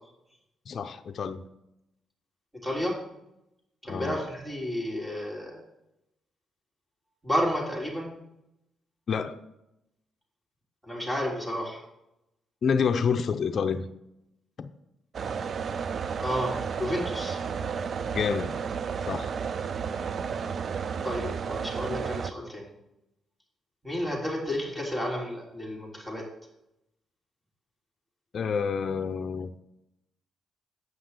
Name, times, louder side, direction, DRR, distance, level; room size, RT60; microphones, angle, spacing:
voice 1, 0.7-1.4 3.9-4.2 9.1-9.4 12.6-13.9 14.6-14.7 18.1-18.5 19.1-19.3 28.3-29.5, left 6 dB, 55° left, 0.6 m, -28 dB
voice 2, 2.6-3.0 3.8-5.6 7.2-8.1 10.8-11.8 16.2-17.4 21.0-22.7 23.8-26.2, equal, 10° right, 3.4 m, -31 dB
sound 1, 15.1-22.3, right 6 dB, 50° right, 0.4 m, -32 dB
8.0 x 5.9 x 6.6 m
cardioid pair, 105°, 0 cm